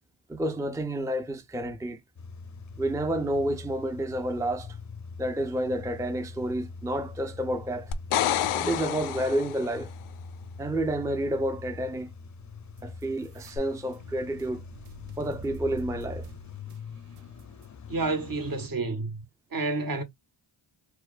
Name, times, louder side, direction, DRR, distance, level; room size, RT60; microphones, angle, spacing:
voice 1, 0.3-2.0 2.8-4.8 5.2-7.9 8.5-9.9 10.6-12.1 12.8-14.6 15.2-16.3, right 1 dB, 5° right, 0.6 m, -30 dB
Car / Engine starting / Idling, 2.2-18.7, left 4 dB, 35° left, 0.6 m, -44 dB
sound 1, 7.9-9.8 13.6-13.7, left 11 dB, 80° left, 0.6 m, -28 dB
sound 2, 12.8-17.7, right 3 dB, 85° right, 0.7 m, -45 dB
voice 2, 17.9-19.2 19.5-20.0, right 3 dB, 40° right, 1.1 m, -29 dB
4.6 x 2.1 x 2.4 m
cardioid pair, 50°, 50 cm